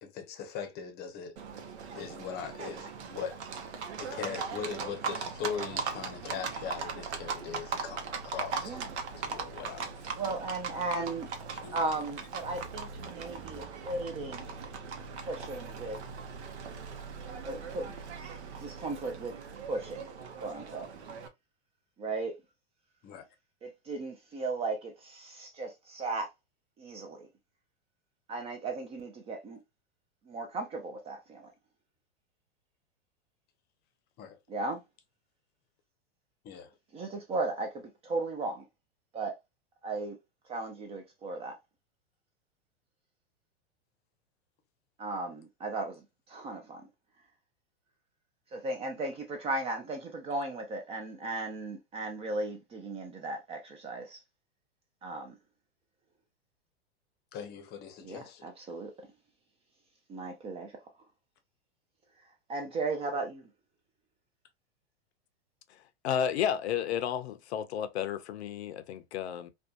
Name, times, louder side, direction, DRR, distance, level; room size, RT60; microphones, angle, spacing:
voice 1, 0.0-1.3 1.9-3.4 4.0-8.8 9.1-9.9 11.6-11.8 23.0-23.3 34.2-34.4 36.4-36.7 57.3-58.5, left 7 dB, 30° left, 0.6 m, -40 dB
Livestock farm animals working animals, 1.4-21.3, right 5 dB, 85° right, 0.7 m, -39 dB
voice 2, 10.2-11.3 11.7-14.6 15.2-16.0 17.4-17.9 18.6-19.3 19.6-20.1 20.4-20.9 22.0-22.3 23.6-26.3 26.8-27.3 28.3-29.6 30.3-31.5 34.5-34.8 36.9-38.6 39.1-39.3 39.8-40.2 40.5-41.6 45.0-46.8 48.5-54.2 55.0-55.4 58.0-58.9 60.1-60.8 62.5-63.5, right 2 dB, 20° right, 0.3 m, -36 dB
voice 3, 66.0-69.5, left 9 dB, 75° left, 0.5 m, -32 dB
2.6 x 2.2 x 2.3 m
hypercardioid pair, 115°, 33 cm